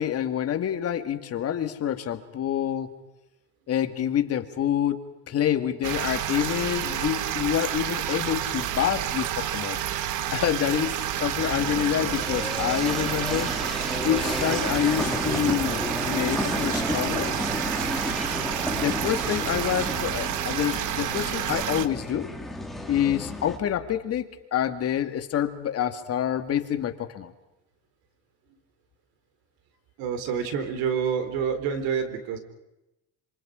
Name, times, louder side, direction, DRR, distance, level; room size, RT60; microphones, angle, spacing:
voice 1, 0.0-3.0 3.7-9.8 10.3-13.5 14.0-17.3 18.7-22.3 22.9-27.3, left 10 dB, 40° left, 8 dB, 2.1 m, -27 dB
sound 1, 5.8-21.9, right 11 dB, 60° right, 1.5 m, -29 dB
sound 2, 11.3-23.6, left 1 dB, ahead, 2.4 m, -32 dB
voice 2, 30.0-32.4, right 7 dB, 80° right, 9 dB, 4.0 m, -27 dB
27.0 x 26.5 x 5.1 m, 0.94 s
cardioid pair, 130°, 36 cm